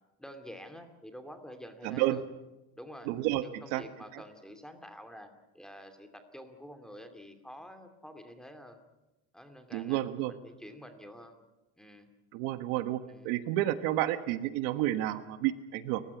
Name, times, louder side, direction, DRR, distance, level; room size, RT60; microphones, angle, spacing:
voice 1, 0.2-2.2 2.8-3.1 3.4-8.8 9.3-11.4 11.8-12.1 13.1-13.3, equal, ahead, 7 dB, 2.6 m, -48 dB
voice 2, 1.8-2.2 3.1-3.8 4.1-4.2 9.7-10.3 12.3-13.0 13.2-16.0, right 14 dB, 75° right, 11 dB, 1.5 m, -30 dB
29.5 x 15.5 x 8.5 m, 1.0 s
cardioid pair, 135°, 31 cm